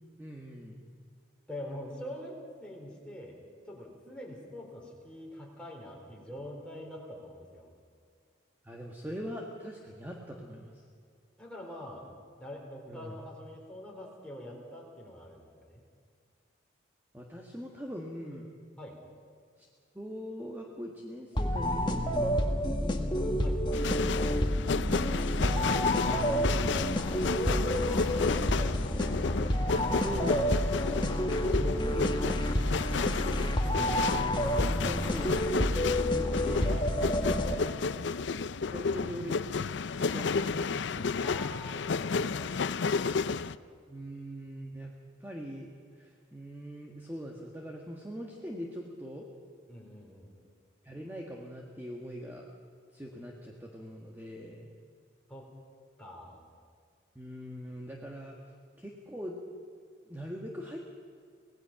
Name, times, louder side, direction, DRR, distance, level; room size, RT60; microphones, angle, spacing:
voice 1, 0.2-0.8 8.6-10.8 12.9-13.2 17.1-18.5 19.6-19.7 19.9-23.2 24.8-25.0 25.3-27.4 29.7-30.5 31.0-32.2 33.0-34.0 34.5-36.8 38.7-39.3 40.1-41.2 43.9-44.9 45.2-49.2 50.8-52.4 52.9-54.7 57.1-58.5 58.8-59.4 60.1-60.8, equal, 10° right, -1 dB, 1.5 m, -42 dB
voice 2, 1.5-3.4 3.7-7.7 11.4-12.0 12.4-15.8 18.8-19.0 23.4-23.7 27.3-28.9 37.4-38.0 41.2-43.5 49.7-50.3 55.3-55.5 56.0-56.4, equal, 5° left, -2 dB, 3.8 m, -44 dB
sound 1, 21.4-37.9, equal, 25° left, 1.4 m, -29 dB
sound 2, 23.7-43.6, left 5 dB, 65° left, 0.5 m, -32 dB
25.0 x 18.5 x 5.8 m, 2.1 s
head